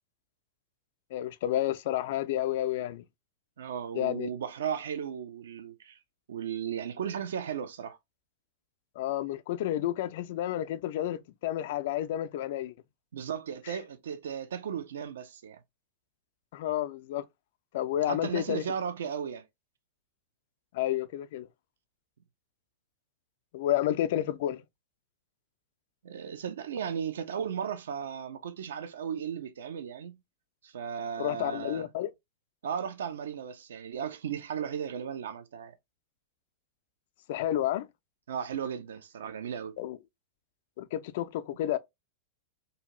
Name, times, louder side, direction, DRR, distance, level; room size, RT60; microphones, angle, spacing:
voice 1, 1.1-3.0 3.9-4.3 9.0-12.7 13.7-13.8 16.5-17.2 17.7-18.6 20.7-21.5 23.5-24.6 31.2-32.1 37.3-37.9 39.8-40.0 40.8-41.8, left 12 dB, 60° left, 0.3 m, -30 dB
voice 2, 3.6-6.0 6.3-8.0 13.1-15.6 18.1-19.4 26.0-30.2 30.6-31.9 32.6-35.7 38.3-39.8, right 8 dB, 70° right, 0.4 m, -35 dB
2.7 x 2.4 x 2.8 m
figure-of-eight pair, 100°, 0 cm